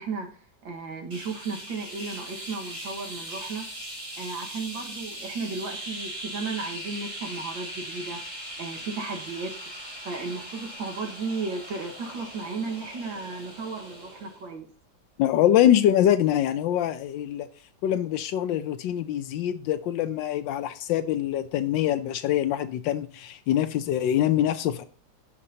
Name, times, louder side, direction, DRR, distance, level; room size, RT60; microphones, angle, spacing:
voice 1, 0.0-3.7 4.2-8.2 8.6-9.5 10.0-14.7, right 4 dB, 90° right, 2.3 m, -34 dB
sound 1, 1.1-14.4, right 1 dB, 40° right, 4.0 m, -39 dB
voice 2, 15.2-17.5 17.8-24.8, left 11 dB, 80° left, 1.3 m, -24 dB
15.0 x 5.2 x 2.8 m
omnidirectional pair, 2.0 m